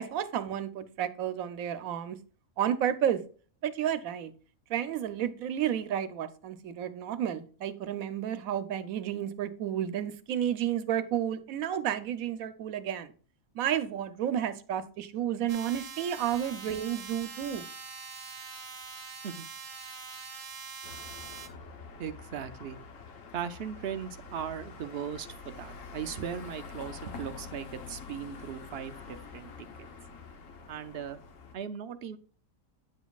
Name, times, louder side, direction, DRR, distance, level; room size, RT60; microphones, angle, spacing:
voice 1, 0.0-2.2 2.6-3.2 3.6-4.3 4.7-13.1 13.5-17.6, right 10 dB, 80° right, 12 dB, 1.1 m, -31 dB
sound 1, 15.5-21.5, right 5 dB, 40° right, 1.2 m, -43 dB
sound 2, 20.8-31.5, left 5 dB, 65° left, 1.3 m, -46 dB
voice 2, 22.0-22.8 23.3-29.5 29.8-29.9 30.7-31.2 31.5-32.2, right 8 dB, 60° right, 9 dB, 0.7 m, -38 dB
9.4 x 7.1 x 2.3 m, 0.40 s
omnidirectional pair, 1.5 m